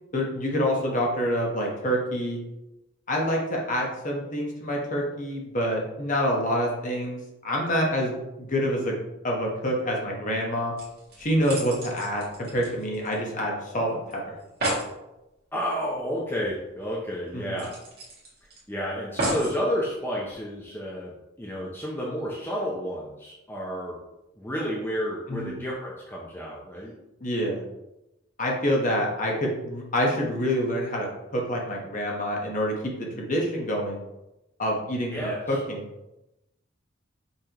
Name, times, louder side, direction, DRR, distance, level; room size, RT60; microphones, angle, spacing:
voice 1, 0.1-2.4 3.1-8.9 9.2-10.7 11.2-14.3 17.3-17.6 25.3-25.5 27.2-27.6 28.4-31.1 31.3-32.7 33.0-34.0 34.6-35.8, equal, 40° left, -1 dB, 1.0 m, -27 dB
sound 1, 10.5-10.6 10.8-13.4 13.7-13.8 14.1-14.2 14.4-14.9 16.4-16.5 16.9-17.0 17.6-18.6 19.2-19.6 20.3-20.4, right 1 dB, 50° right, 1.6 m, -32 dB
voice 2, 15.5-17.7 18.7-24.0 24.4-26.9 35.1-35.6, equal, 10° left, -4 dB, 0.6 m, -31 dB
5.5 x 3.3 x 2.9 m, 0.94 s
head